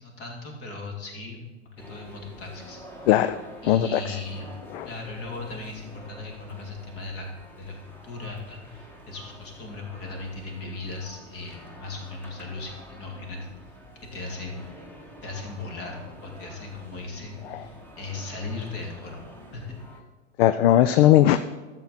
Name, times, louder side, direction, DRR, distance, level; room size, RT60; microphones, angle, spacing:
voice 1, 0.0-1.4 1.9-2.8 3.6-4.5 4.8-7.3 7.6-13.5 14.1-14.8 15.2-19.2 19.4-19.8 20.8-21.1, left 3 dB, 35° left, 1 dB, 2.6 m, -37 dB
sound 1, 1.8-20.0, equal, 5° left, 1.4 m, -47 dB
voice 2, 3.1-3.4 3.7-4.2 4.7-4.9 17.5-17.6 20.4-21.4, left 12 dB, 55° left, 13 dB, 0.5 m, -19 dB
12.5 x 7.5 x 4.0 m, 1.3 s
hypercardioid pair, 105°, 36 cm